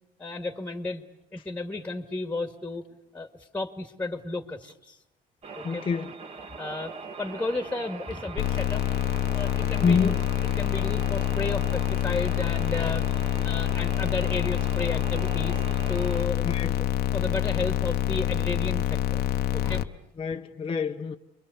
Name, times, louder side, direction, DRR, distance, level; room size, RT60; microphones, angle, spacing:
voice 1, 0.2-1.0 1.3-2.9 3.1-3.3 3.5-5.0 5.6-5.9 6.6-6.9 7.2-8.8 9.3-10.2 10.6-15.6 15.9-16.5 17.1-19.2 19.5-19.8, left 2 dB, 10° left, 2.0 m, -33 dB
sound 1, 5.4-16.3, right 5 dB, 40° right, 1.9 m, -41 dB
voice 2, 5.6-6.1 9.8-10.2 16.4-16.8 20.2-21.2, left 5 dB, 30° left, 0.9 m, -26 dB
sound 2, 8.4-19.8, left 12 dB, 70° left, 1.0 m, -26 dB
29.0 x 22.5 x 7.0 m
cardioid pair, 110°, 17 cm